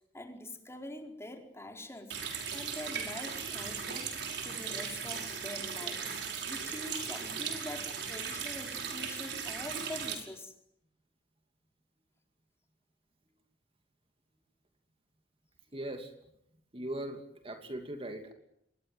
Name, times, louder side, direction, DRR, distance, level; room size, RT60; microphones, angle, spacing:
voice 1, 0.1-2.2 2.5-4.1 4.4-6.0 6.4-10.5, left 1 dB, 15° left, 3 dB, 4.7 m, -44 dB
Water tap faucet, 2.1-10.1, right 6 dB, 70° right, 5.7 m, -37 dB
voice 2, 15.7-16.1 16.7-18.3, right 1 dB, 35° right, 5 dB, 2.8 m, -39 dB
27.0 x 22.5 x 9.4 m, 0.77 s
head